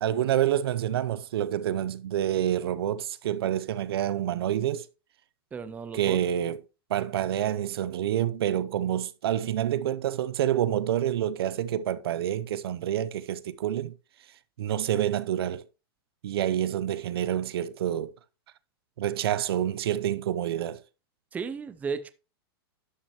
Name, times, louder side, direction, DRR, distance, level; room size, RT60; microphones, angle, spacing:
voice 1, 0.0-4.9 5.9-6.6 6.9-14.0 14.6-15.6 16.2-18.1 19.0-20.8, right 11 dB, 75° right, 0.6 m, -28 dB
voice 2, 5.5-6.2 21.3-22.1, right 5 dB, 10° right, 0.4 m, -34 dB
11.5 x 6.1 x 2.9 m
hypercardioid pair, 140°, 13 cm